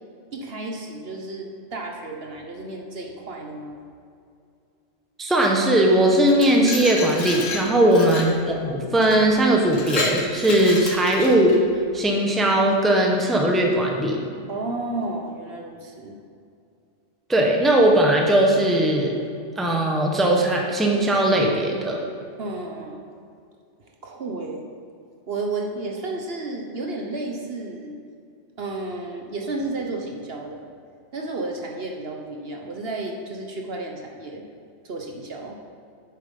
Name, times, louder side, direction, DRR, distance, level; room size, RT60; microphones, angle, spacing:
voice 1, 0.3-3.8 7.8-8.1 14.5-16.2 22.4-23.0 23.8-24.6 25.3-28.0 28.6-30.7 31.1-34.4 34.8-35.6, right 2 dB, 55° right, 1 dB, 1.1 m, -32 dB
voice 2, 5.2-11.6 11.9-14.2 17.3-19.2 19.6-22.0, right 1 dB, ahead, 0 dB, 0.9 m, -19 dB
Glass, 6.1-8.4 9.0-9.2 9.6-11.6, left 4 dB, 90° left, 1.5 m, -31 dB
9.1 x 7.3 x 5.4 m, 2.4 s
omnidirectional pair, 1.3 m